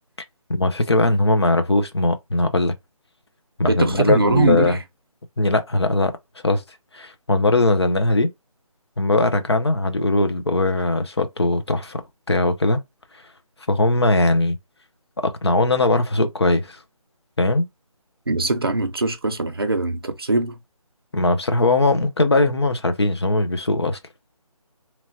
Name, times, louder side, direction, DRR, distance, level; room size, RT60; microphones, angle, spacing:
voice 1, 0.5-2.7 3.6-4.8 5.4-6.2 6.4-6.6 6.9-8.3 9.0-12.8 13.7-14.6 15.2-16.8 17.4-17.7 21.1-24.0, left 2 dB, 45° left, 0.5 m, -20 dB
voice 2, 3.7-4.8 18.3-20.6, right 3 dB, 40° right, 0.6 m, -22 dB
2.9 x 2.1 x 2.7 m
figure-of-eight pair, 175°, 19 cm